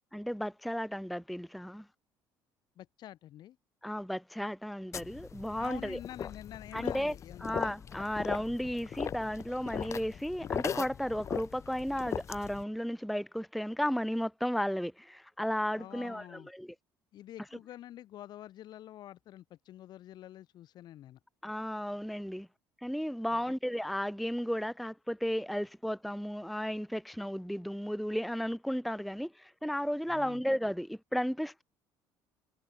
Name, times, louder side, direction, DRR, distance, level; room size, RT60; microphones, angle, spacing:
voice 1, 0.1-1.8 3.8-6.0 6.7-7.1 7.4-16.7 21.4-22.5 22.8-31.6, equal, ahead, 0.5 m, -34 dB
voice 2, 2.8-3.6 5.6-7.7 15.8-16.5 17.1-21.2 23.3-23.5 30.1-30.4, left 13 dB, 60° left, 3.7 m, -47 dB
sound 1, 4.9-12.6, left 8 dB, 40° left, 1.1 m, -39 dB
cardioid pair, 120°, 8 cm